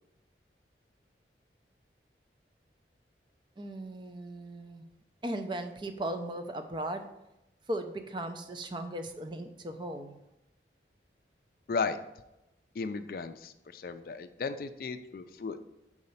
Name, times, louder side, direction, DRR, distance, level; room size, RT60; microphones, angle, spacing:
voice 1, 3.6-4.8 5.2-7.1 7.7-10.2, right 1 dB, 25° right, 7 dB, 0.5 m, -37 dB
voice 2, 12.8-15.6, left 4 dB, 55° left, 10 dB, 0.4 m, -35 dB
4.8 x 4.3 x 5.4 m, 0.91 s
head